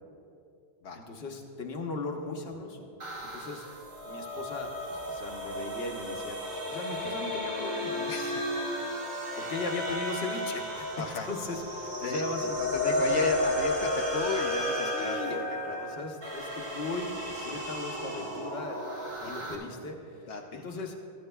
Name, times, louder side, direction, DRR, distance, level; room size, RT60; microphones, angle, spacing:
voice 1, 0.9-2.9 3.3-3.6 4.0-8.1 9.4-13.3 14.9-20.2 20.5-21.0, left 2 dB, 60° left, 3 dB, 1.2 m, -38 dB
sound 1, 3.0-19.5, left 1 dB, 80° right, 1.9 m, -33 dB
voice 2, 8.1-8.6 11.0-11.3 12.0-12.2 12.6-15.8 17.3-17.6 19.2-19.5 20.3-20.6, left 5 dB, 80° left, 2 dB, 0.9 m, -35 dB
14.0 x 14.0 x 2.3 m, 2.7 s
omnidirectional pair, 1.2 m